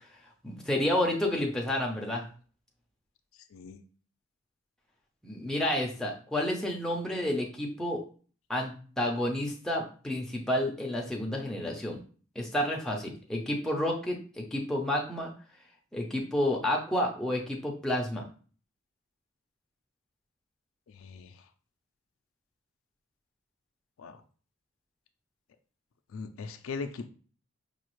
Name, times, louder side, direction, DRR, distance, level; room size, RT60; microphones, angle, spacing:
voice 1, 0.4-2.2 5.2-8.0 8.5-12.0 12.4-15.3 15.9-18.2, left 1 dB, 5° left, -1 dB, 0.6 m, -30 dB
voice 2, 21.0-21.3 24.0-24.2 26.1-27.1, left 4 dB, 75° left, 9 dB, 0.4 m, -39 dB
5.0 x 2.4 x 3.1 m, 0.41 s
head